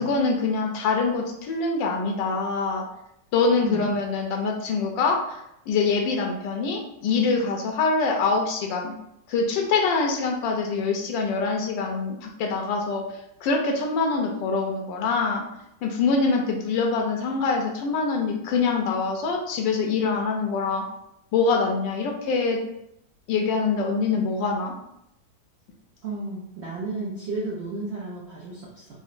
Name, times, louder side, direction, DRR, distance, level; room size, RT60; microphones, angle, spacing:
voice 1, 0.0-2.8 3.3-5.4 5.7-8.9 9.3-13.0 13.4-15.4 15.8-20.8 21.3-22.6 23.3-24.7, left 4 dB, 85° left, 1 dB, 1.3 m, -24 dB
voice 2, 26.0-28.9, right 2 dB, 80° right, -6 dB, 0.5 m, -32 dB
3.8 x 2.1 x 2.5 m, 0.82 s
omnidirectional pair, 1.9 m